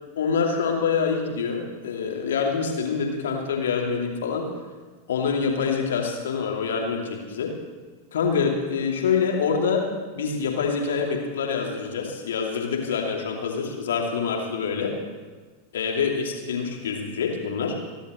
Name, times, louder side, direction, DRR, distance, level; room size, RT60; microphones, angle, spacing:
voice 1, 0.2-4.5 5.1-7.5 8.1-9.8 10.2-14.9 15.7-17.7, left 6 dB, 60° left, 0 dB, 2.6 m, -26 dB
28.5 x 11.5 x 3.1 m, 1.4 s
figure-of-eight pair, 90°, 0 cm